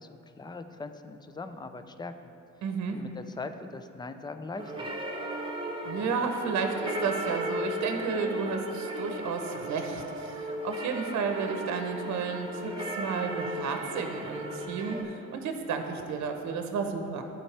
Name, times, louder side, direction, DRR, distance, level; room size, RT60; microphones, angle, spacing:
voice 1, 0.0-2.3 2.9-4.9, left 3 dB, 15° left, 9 dB, 0.4 m, -41 dB
voice 2, 2.6-3.0 5.8-17.2, right 5 dB, 65° right, 5 dB, 0.8 m, -32 dB
sound 1, 4.6-15.0, right 1 dB, 15° right, 1.0 m, -36 dB
13.0 x 4.4 x 3.3 m, 2.7 s
cardioid pair, 90°, 30 cm